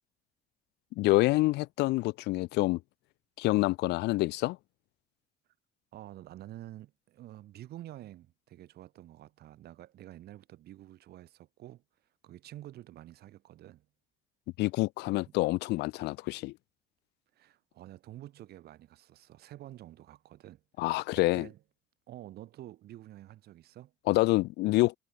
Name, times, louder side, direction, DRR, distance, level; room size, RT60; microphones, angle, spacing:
voice 1, 1.0-2.8 3.4-4.6 14.6-16.5 20.8-21.5 24.1-24.9, left 20 dB, 85° left, 1.2 m, -27 dB
voice 2, 5.9-11.8 12.2-13.9 17.3-20.6 21.1-21.6 22.1-23.9, right 14 dB, 70° right, 5.1 m, -49 dB
cardioid pair, 110°, 17 cm